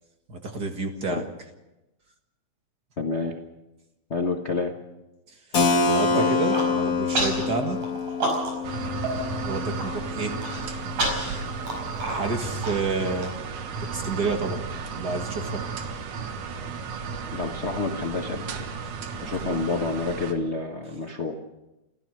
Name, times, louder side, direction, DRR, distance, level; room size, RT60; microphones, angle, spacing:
voice 1, 0.3-1.2 5.8-7.8 9.5-10.4 12.2-13.4 13.8-14.6 14.9-15.7 19.2-19.6, right 4 dB, 40° right, 4 dB, 2.0 m, -29 dB
voice 2, 3.0-3.4 4.1-4.8 6.1-6.4 17.3-18.7 19.2-21.4, left 3 dB, 75° left, 2 dB, 0.6 m, -28 dB
Keyboard (musical), 5.5-11.1, left 4 dB, 45° left, 1.1 m, -26 dB
Human voice, 6.3-6.7 7.2-7.5 7.8-8.7 9.0-9.1 9.5-9.9 10.4-13.3, right 2 dB, 70° right, 6.3 m, -29 dB
sound 1, 8.6-20.3, right 5 dB, 85° right, 2.9 m, -34 dB
28.5 x 14.0 x 6.5 m, 0.99 s
omnidirectional pair, 3.4 m